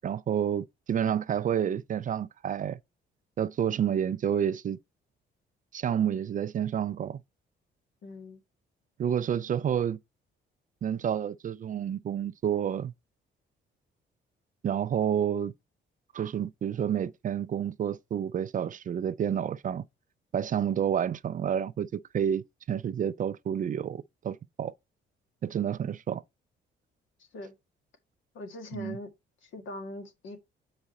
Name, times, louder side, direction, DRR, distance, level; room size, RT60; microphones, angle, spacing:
voice 1, 0.0-2.8 3.4-4.8 5.7-7.2 9.0-10.0 10.8-12.9 14.6-15.5 16.1-19.8 20.3-24.7 25.4-26.2 28.7-29.0, right 9 dB, 40° right, 0.4 m, -29 dB
voice 2, 8.0-8.4 27.3-27.6 28.3-29.1 29.4-30.4, left 2 dB, 75° left, 1.7 m, -41 dB
6.1 x 4.8 x 4.2 m
cardioid pair, 90°, 20 cm